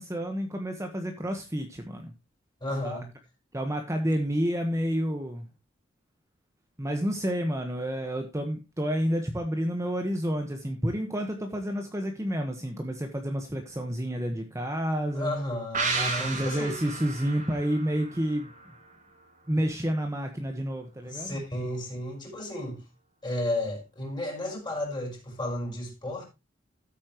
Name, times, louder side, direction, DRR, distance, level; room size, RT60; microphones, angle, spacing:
voice 1, 0.0-2.1 2.8-3.0 3.5-5.5 6.8-15.3 15.9-18.5 19.5-21.4, equal, 15° right, 1.2 m, -30 dB
voice 2, 2.6-3.1 15.1-16.8 21.0-22.8 23.2-26.2, left 1 dB, 25° left, 5.7 m, -33 dB
sound 1, 15.7-19.2 19.5-19.6, right 3 dB, 40° right, 2.9 m, -33 dB
14.0 x 8.5 x 3.0 m
head